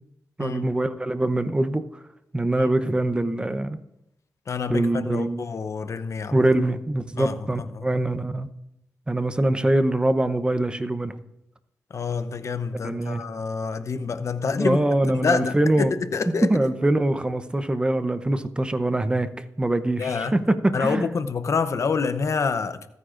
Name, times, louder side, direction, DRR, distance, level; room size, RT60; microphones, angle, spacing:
voice 1, 0.4-1.8 2.3-3.8 4.7-5.4 6.3-8.5 9.1-11.1 12.8-13.2 14.6-15.9 16.4-21.1, right 1 dB, 15° right, 0.7 m, -23 dB
voice 2, 4.5-6.5 7.2-7.9 11.9-14.8 15.1-16.5 20.0-20.3 20.7-22.9, left 5 dB, 60° left, 0.7 m, -27 dB
26.0 x 9.6 x 2.5 m
wide cardioid pair, 90°, 6 cm